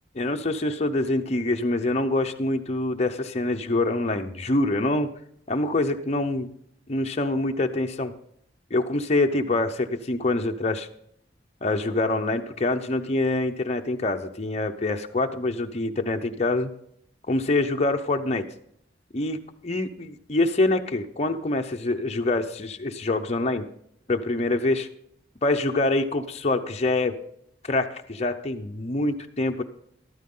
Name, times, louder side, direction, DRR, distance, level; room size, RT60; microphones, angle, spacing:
voice 1, 0.1-5.1 5.5-6.5 6.9-8.1 8.7-10.9 11.6-16.7 17.3-18.4 19.1-19.4 19.6-23.7 24.1-24.9 25.4-27.1 27.7-29.6, left 2 dB, 35° left, 4 dB, 0.7 m, -25 dB
13.5 x 12.5 x 3.8 m, 0.70 s
head